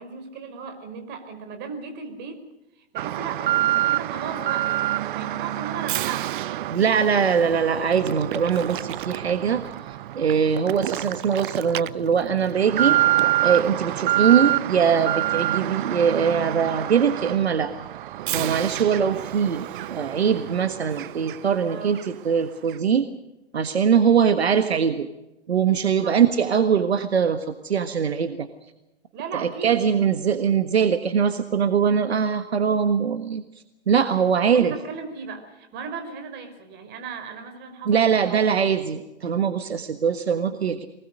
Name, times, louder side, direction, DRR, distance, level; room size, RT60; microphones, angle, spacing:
voice 1, 0.0-2.4 2.9-6.3 21.7-21.9 26.0-26.2 29.1-30.2 34.5-38.4, right 6 dB, 35° right, 7 dB, 4.9 m, -36 dB
Alarm, 3.0-21.6 21.9-22.1 22.7-22.8, right 14 dB, 50° right, 0.7 m, -27 dB
voice 2, 6.7-9.7 10.1-13.0 13.4-17.7 18.3-23.1 23.5-25.1 25.5-28.5 29.3-33.4 33.9-34.7 37.9-40.9, right 7 dB, 75° right, 10 dB, 1.6 m, -22 dB
23.5 x 20.5 x 6.5 m, 0.94 s
figure-of-eight pair, 110°, 32 cm